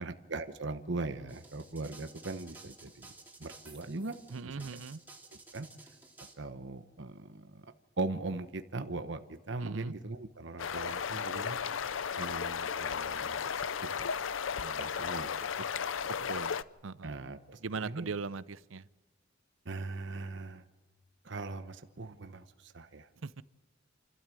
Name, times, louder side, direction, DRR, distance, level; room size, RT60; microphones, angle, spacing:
voice 1, 0.0-3.1 3.4-4.2 4.5-4.8 5.3-5.7 6.4-7.6 8.0-11.6 11.9-14.1 14.6-15.3 15.6-15.8 16.2-16.3 17.0-18.1 19.6-20.6 21.2-23.1, right 3 dB, 60° right, 1.1 m, -40 dB
sound 1, 1.3-6.3, right 3 dB, 10° right, 2.8 m, -53 dB
voice 2, 4.3-5.0 9.6-9.9 16.3-17.1 17.6-18.9 23.2-23.4, right 4 dB, 75° right, 0.7 m, -40 dB
sound 2, 10.6-16.6, left 7 dB, 70° left, 0.5 m, -35 dB
29.0 x 12.5 x 7.7 m
head